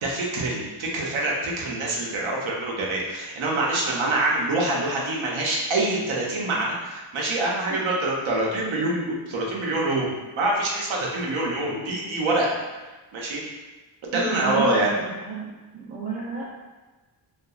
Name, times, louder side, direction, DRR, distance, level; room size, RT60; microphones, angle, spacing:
voice 1, 0.0-13.4 14.0-14.9, right 2 dB, 75° right, -3 dB, 0.7 m, -25 dB
voice 2, 14.1-15.5 15.9-16.5, right 4 dB, 20° right, -6 dB, 0.5 m, -31 dB
2.7 x 2.4 x 2.3 m, 1.2 s
wide cardioid pair, 150°, 47 cm